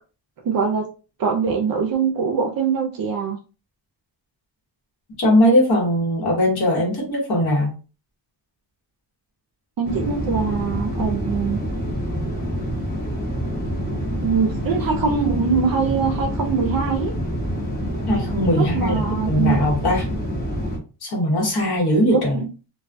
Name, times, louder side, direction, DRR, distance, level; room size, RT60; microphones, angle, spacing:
voice 1, 0.4-0.9 1.2-3.4 9.8-11.6 13.9-17.1 18.5-19.6 22.1-22.5, right 5 dB, 55° right, 0.5 m, -23 dB
voice 2, 5.2-7.7 18.1-20.1 21.0-22.4, left 1 dB, 60° left, 1.0 m, -20 dB
sound 1, 9.8-20.8, equal, 20° left, 0.8 m, -26 dB
2.2 x 2.2 x 2.5 m
wide cardioid pair, 135°, 43 cm